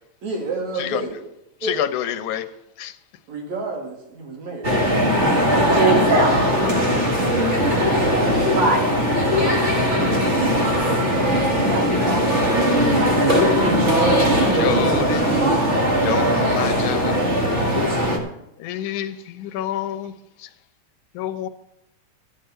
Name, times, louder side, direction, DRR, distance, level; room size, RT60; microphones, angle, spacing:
voice 1, 0.2-1.3 1.6-1.9 3.3-4.7, right 3 dB, 65° right, 0 dB, 3.9 m, -29 dB
voice 2, 1.7-2.4 2.8-2.9 12.8-12.9 13.8-15.2 16.0-17.3 18.6-20.1 21.2-21.5, left 11 dB, 85° left, 10 dB, 2.3 m, -28 dB
sound 1, 4.6-18.2, equal, 30° right, 1.5 m, -19 dB
voice 3, 5.8-6.6 8.5-9.0 11.6-12.6, right 3 dB, 90° right, 0 dB, 3.8 m, -23 dB
13.0 x 6.6 x 7.9 m, 0.82 s
omnidirectional pair, 3.4 m